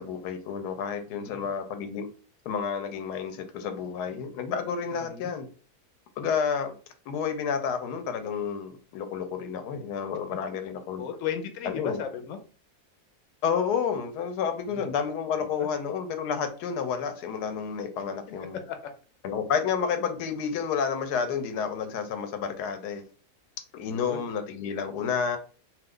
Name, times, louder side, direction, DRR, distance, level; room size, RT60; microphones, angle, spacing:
voice 1, 0.0-2.1 2.5-5.5 6.2-6.7 7.1-11.0 11.6-12.0 13.4-18.6 19.2-23.0 23.7-25.4, left 6 dB, 85° left, 8 dB, 1.1 m, -30 dB
voice 2, 1.1-1.5 4.9-5.3 11.0-12.4 14.7-14.9 15.6-15.7 18.7-18.8 23.8-24.2, left 8 dB, 65° left, 6 dB, 0.9 m, -36 dB
2.6 x 2.4 x 3.5 m, 0.38 s
omnidirectional pair, 1.7 m